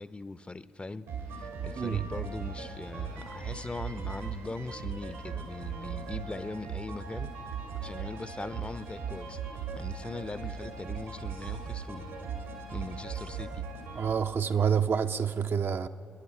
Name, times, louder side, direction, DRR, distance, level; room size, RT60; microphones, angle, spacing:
voice 1, 0.0-7.4 7.8-9.4 9.7-12.2 12.7-13.7, left 3 dB, 20° left, 0.6 m, -40 dB
sound 1, 1.1-14.1, right 6 dB, 80° right, 1.9 m, -38 dB
voice 2, 14.0-15.9, right 7 dB, 45° right, 0.5 m, -27 dB
27.5 x 10.5 x 4.4 m
hypercardioid pair, 45°, 5 cm